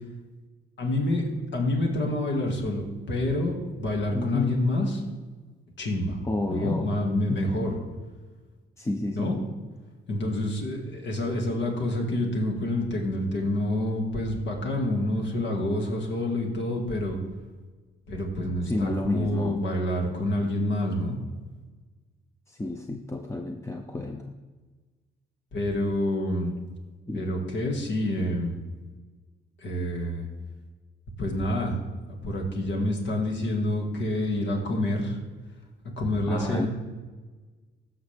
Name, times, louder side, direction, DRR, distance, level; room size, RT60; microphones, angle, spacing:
voice 1, 0.8-4.9 5.8-6.2 6.5-7.8 9.1-9.4 10.1-17.2 18.1-21.2 25.5-26.5 27.1-28.6 29.6-30.3 31.2-31.8 32.1-35.2 36.0-36.7, left 1 dB, 70° left, 1 dB, 2.1 m, -27 dB
voice 2, 4.1-4.7 6.2-6.9 7.3-7.5 8.8-9.5 18.6-19.6 22.5-24.3 27.1-27.3 36.3-36.7, left 2 dB, 15° left, 4 dB, 0.6 m, -31 dB
16.0 x 6.2 x 3.4 m, 1.4 s
cardioid pair, 90°, 20 cm